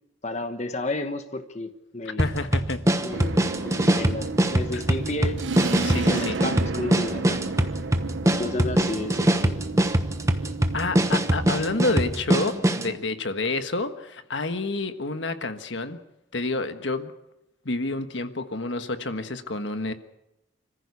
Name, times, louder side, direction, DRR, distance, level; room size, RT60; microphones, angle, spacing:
voice 1, 0.2-2.3 3.0-7.4 8.4-9.6, left 2 dB, 35° left, 8 dB, 1.2 m, -32 dB
voice 2, 2.2-2.8 4.7-4.8 5.8-6.4 10.7-16.0 16.3-17.1 17.6-19.9, left 2 dB, 70° left, 8 dB, 1.4 m, -29 dB
sound 1, 2.2-12.9, right 1 dB, 15° right, 1.0 m, -23 dB
sound 2, 3.1-12.1, right 3 dB, 75° right, 0.9 m, -33 dB
26.5 x 15.0 x 8.4 m, 0.91 s
head